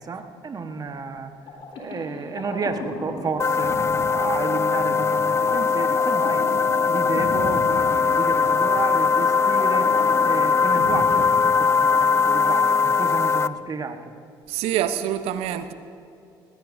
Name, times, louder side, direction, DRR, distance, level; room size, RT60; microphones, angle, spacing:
voice 1, 0.0-1.3 1.7-6.5 6.9-14.1, right 4 dB, 35° right, 6 dB, 1.4 m, -31 dB
sound 1, 1.5-12.1, left 2 dB, 65° left, 3.9 m, -36 dB
sound 2, 3.4-13.5, left 5 dB, 25° left, 0.4 m, -20 dB
voice 2, 14.5-15.7, right 11 dB, 70° right, 11 dB, 0.8 m, -26 dB
20.0 x 18.5 x 2.7 m, 2.6 s
hypercardioid pair, 60°, 10 cm